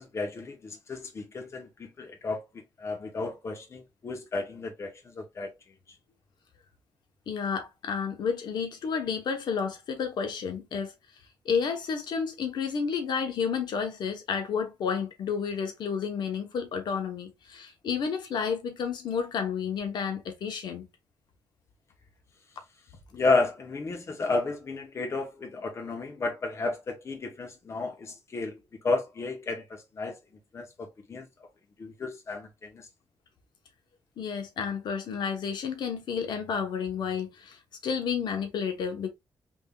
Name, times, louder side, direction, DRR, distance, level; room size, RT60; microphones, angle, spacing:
voice 1, 0.0-2.4 2.8-5.5 23.1-30.2 30.5-31.3 31.8-32.9, left 3 dB, 35° left, 0.9 m, -32 dB
voice 2, 7.3-10.9 11.4-20.9 34.2-39.1, left 6 dB, 70° left, 1.0 m, -31 dB
3.6 x 3.4 x 2.3 m
cardioid pair, 110°, 8 cm